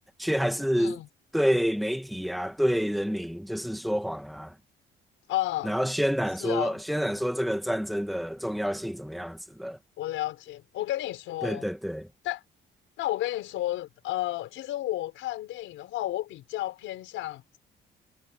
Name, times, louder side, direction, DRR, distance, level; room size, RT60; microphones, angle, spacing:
voice 1, 0.2-1.0 1.3-4.5 5.6-9.8 11.4-12.1, equal, ahead, 2.4 m, -28 dB
voice 2, 0.7-1.1 5.3-5.7 6.4-6.8 10.0-11.7 12.2-12.4 13.0-17.4, left 15 dB, 90° left, 5.6 m, -32 dB
cardioid pair, 90°, 20 cm